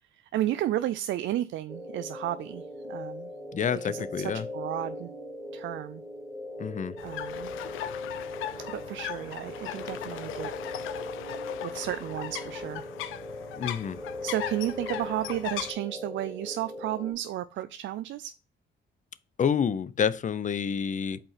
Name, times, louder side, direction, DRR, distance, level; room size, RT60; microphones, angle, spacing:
voice 1, 0.1-3.3 3.8-5.1 5.5-6.0 7.0-7.5 8.5-10.5 11.6-12.8 14.2-18.3, right 13 dB, 75° right, 0.5 m, -33 dB
sound 1, 1.7-17.1, left 1 dB, 15° left, 3.0 m, -39 dB
voice 2, 3.5-4.5 6.6-7.0 13.6-14.0 19.4-21.2, left 7 dB, 40° left, 0.6 m, -28 dB
sound 2, 7.0-15.7, left 11 dB, 85° left, 0.6 m, -38 dB
5.5 x 4.3 x 5.7 m
cardioid pair, 90°, 20 cm